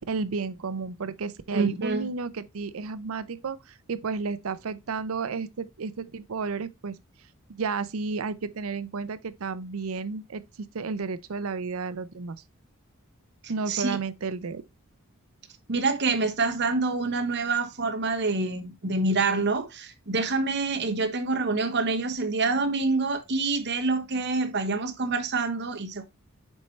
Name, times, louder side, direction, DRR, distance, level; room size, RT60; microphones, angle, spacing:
voice 1, 0.1-7.0 7.5-10.4 10.7-12.4 13.5-14.6, right 4 dB, 75° right, 0.6 m, -32 dB
voice 2, 1.5-2.1 13.7-14.0 15.7-26.0, right 3 dB, 50° right, 1.0 m, -26 dB
7.3 x 4.5 x 3.2 m
head